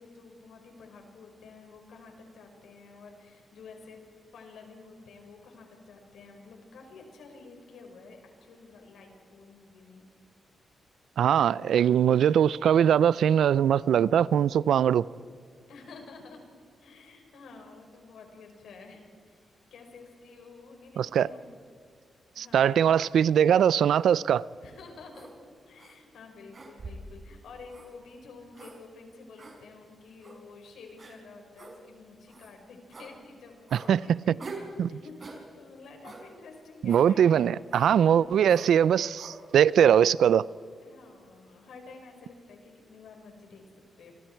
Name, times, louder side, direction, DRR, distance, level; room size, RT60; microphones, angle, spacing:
voice 1, 0.0-4.0 4.3-10.0 15.7-16.4 16.8-19.4 19.7-21.5 22.3-22.7 24.6-25.3 25.7-38.3 40.8-44.1, left 4 dB, 85° left, 5.1 m, -50 dB
voice 2, 11.2-15.1 21.0-21.3 22.4-24.4 33.9-34.0 34.3-34.4 34.8-34.9 36.8-40.5, right 9 dB, 85° right, 0.4 m, -21 dB
sound 1, 25.1-25.3 25.8-25.9 26.5-27.1 27.7-27.9 28.5-28.8 29.4-29.5 30.2-30.4 31.0-31.1 31.6-31.7 32.3-32.5 32.9-33.1 33.7-33.9 34.4-34.7 35.2-35.4 36.0-36.2 36.9-37.1 37.7-37.9 38.5-38.7 39.2-39.4, right 3 dB, 40° right, 5.4 m, -44 dB
28.0 x 25.0 x 4.6 m
cardioid pair, 100°, 0 cm